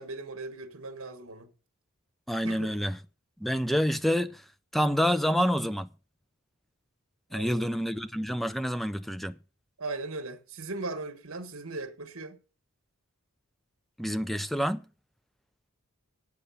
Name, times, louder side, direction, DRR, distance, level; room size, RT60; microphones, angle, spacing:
voice 1, 0.0-1.5 2.4-2.7 7.3-7.7 9.8-12.4, right 3 dB, 70° right, 1.5 m, -38 dB
voice 2, 2.3-3.0 3.4-4.4 4.7-5.9 7.3-9.4 14.0-14.8, equal, ahead, 0.5 m, -27 dB
8.4 x 6.9 x 8.5 m
head